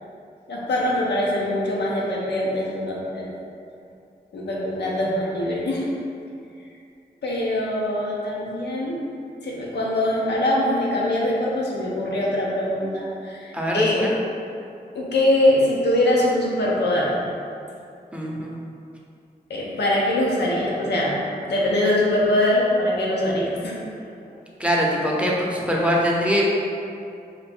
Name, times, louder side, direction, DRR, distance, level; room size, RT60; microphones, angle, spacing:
voice 1, 0.5-3.3 4.3-5.9 7.2-9.0 9.4-14.1 14.9-17.2 19.5-23.8, left 1 dB, 90° left, -4 dB, 0.5 m, -23 dB
voice 2, 13.5-14.1 18.1-18.5 24.6-26.5, equal, 5° right, -3 dB, 0.5 m, -22 dB
2.5 x 2.5 x 3.4 m, 2.5 s
cardioid pair, 45°, 17 cm